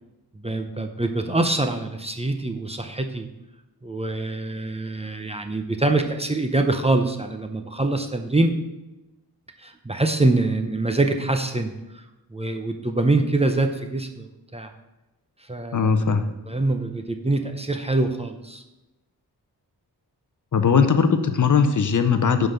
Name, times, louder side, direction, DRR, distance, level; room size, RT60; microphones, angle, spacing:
voice 1, 0.4-3.3 3.8-8.6 9.6-12.0 12.3-14.7 15.5-15.9 16.5-18.6, right 2 dB, 15° right, 5 dB, 0.6 m, -24 dB
voice 2, 15.7-16.2 20.5-22.5, left 6 dB, 50° left, 9 dB, 0.7 m, -19 dB
10.0 x 3.9 x 6.7 m, 0.99 s
wide cardioid pair, 120°, 39 cm